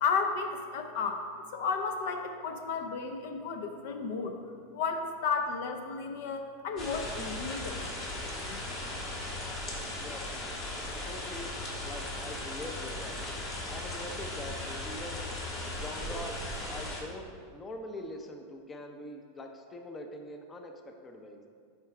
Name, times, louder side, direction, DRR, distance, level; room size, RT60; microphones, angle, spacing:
voice 1, 0.0-1.2 1.5-4.3 4.7-7.8, left 5 dB, 65° left, 5 dB, 0.6 m, -33 dB
sound 1, 6.8-17.0, left 1 dB, 40° left, 1.6 m, -37 dB
voice 2, 10.9-11.5 11.8-13.2 13.7-15.3 15.7-21.4, left 1 dB, 20° left, 4 dB, 0.6 m, -43 dB
6.5 x 4.4 x 4.8 m, 2.2 s
supercardioid pair, 130°, 0 cm